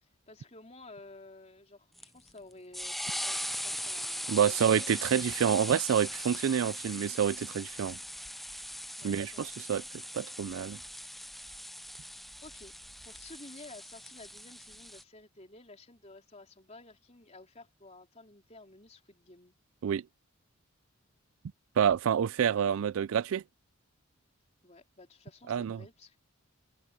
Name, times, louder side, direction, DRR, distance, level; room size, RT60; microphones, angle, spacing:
voice 1, 0.0-4.6 9.0-9.5 12.4-12.7 13.0-19.5 24.6-26.2, left 2 dB, 30° left, 3.7 m, -53 dB
sound 1, 2.0-15.0, equal, ahead, 0.4 m, -40 dB
voice 2, 4.3-8.0 9.0-9.8 10.1-10.8 19.8-20.0 21.8-23.4 25.5-25.8, right 8 dB, 70° right, 0.3 m, -28 dB
head